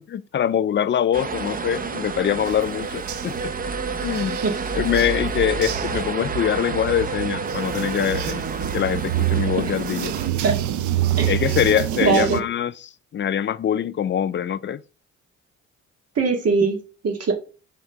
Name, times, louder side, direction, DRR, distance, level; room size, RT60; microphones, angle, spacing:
voice 1, 0.0-3.5 4.0-4.4 4.7-8.4 8.7-10.2 11.3-12.7 13.1-14.8, left 9 dB, 40° left, 0.4 m, -23 dB
sound 1, 1.1-10.3, right 4 dB, 30° right, 0.6 m, -30 dB
sound 2, 2.5-12.4, right 12 dB, 75° right, 0.7 m, -28 dB
voice 2, 12.0-12.4 16.2-17.3, right 5 dB, 55° right, 2.0 m, -21 dB
5.4 x 3.7 x 5.8 m
cardioid pair, 90°, 30 cm